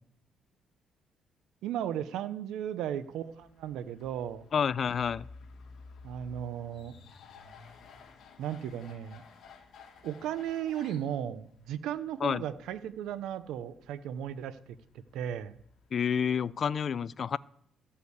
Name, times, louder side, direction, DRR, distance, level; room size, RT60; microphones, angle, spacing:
voice 1, 1.6-4.4 6.0-6.9 8.4-9.2 10.0-14.7 15.1-15.6, right 10 dB, 85° right, 13 dB, 0.6 m, -35 dB
sound 1, 2.8-16.8, left 4 dB, 65° left, 2.0 m, -55 dB
voice 2, 4.5-5.2 12.2-12.4 15.9-17.4, left 7 dB, 50° left, 20 dB, 0.4 m, -29 dB
13.5 x 5.6 x 7.9 m, 0.69 s
cardioid pair, 90°, 0 cm